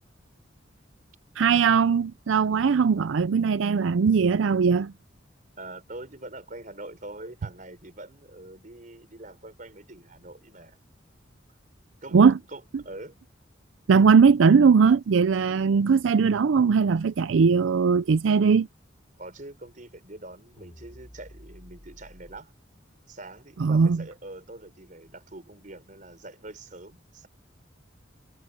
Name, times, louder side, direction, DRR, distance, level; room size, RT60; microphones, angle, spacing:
voice 1, 1.4-4.9 12.1-12.4 13.9-18.7 23.6-24.0, right 5 dB, 80° right, 0.4 m, -20 dB
voice 2, 5.6-10.8 12.0-12.2 12.5-13.2 19.2-22.5 23.1-27.3, right 2 dB, 45° right, 5.3 m, -44 dB
sound 1, 20.6-22.4, equal, 35° left, 3.3 m, -50 dB
head